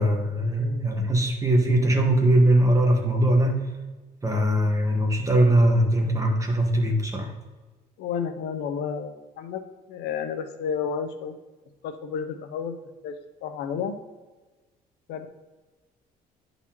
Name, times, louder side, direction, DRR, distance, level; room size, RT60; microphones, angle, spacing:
voice 1, 0.0-3.7 4.2-7.3, right 1 dB, 20° right, 1 dB, 1.4 m, -21 dB
voice 2, 8.0-9.6 9.9-11.3 11.8-12.8 13.0-14.0 15.1-15.3, left 6 dB, 85° left, 8 dB, 0.7 m, -31 dB
10.5 x 4.0 x 3.0 m, 1.2 s
cardioid pair, 110°, 17 cm